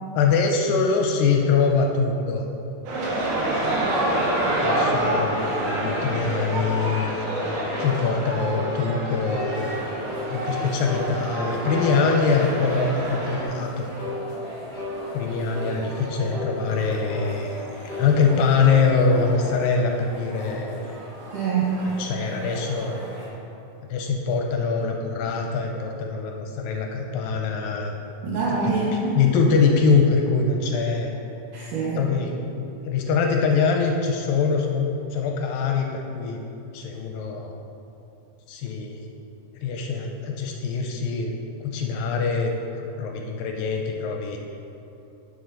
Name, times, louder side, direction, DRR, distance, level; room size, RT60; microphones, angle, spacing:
voice 1, 0.1-2.5 3.6-7.3 7.8-9.9 10.3-13.9 15.1-20.7 21.9-23.0 23.9-28.0 28.3-28.6 29.2-31.1 31.9-36.4 36.7-37.5 38.5-39.1 39.6-41.3 41.6-44.4, left 5 dB, 80° left, 2 dB, 2.3 m, -24 dB
sound 1, 2.9-13.4, right 1 dB, 85° right, 3.5 m, -27 dB
sound 2, 7.7-8.0 8.5-8.7 9.3-9.5 10.1-10.3 10.8-11.1 11.6-11.9 12.4-12.7 13.2-13.4 14.0-14.2 14.7-15.0 15.5-15.8 16.3-16.5 17.1-17.3 17.9-18.1 18.6-18.9 19.2-19.7, left 3 dB, 30° left, 2.2 m, -34 dB
sound 3, 9.5-23.3, equal, 35° right, 2.1 m, -39 dB
voice 2, 21.3-21.8 28.2-29.2 31.5-32.0, right 4 dB, 70° right, -8 dB, 2.5 m, -25 dB
10.5 x 6.8 x 3.9 m, 2.8 s
omnidirectional pair, 4.3 m